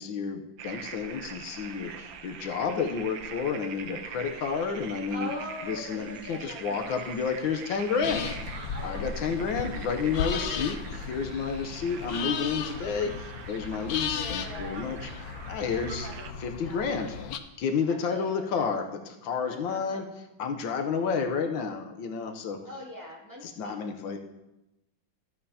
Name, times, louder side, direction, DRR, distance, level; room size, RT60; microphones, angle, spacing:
voice 1, 0.0-5.3 5.6-8.3 8.8-15.1 15.5-16.1 16.4-17.1 17.6-20.1 20.4-22.6 23.4-24.2, left 5 dB, 80° left, 5 dB, 1.6 m, -30 dB
sound 1, 0.6-16.3, right 7 dB, 75° right, 1.5 m, -43 dB
voice 2, 5.1-7.1 8.7-9.6 10.5-10.7 14.1-15.0 15.7-16.3 16.6-17.3 17.9-18.7 19.4-20.0 22.6-23.8, left 1 dB, 10° right, -5 dB, 2.4 m, -42 dB
sound 2, 8.0-17.4, left 7 dB, 65° left, 1.0 m, -35 dB
14.0 x 8.9 x 2.8 m, 0.96 s
omnidirectional pair, 2.1 m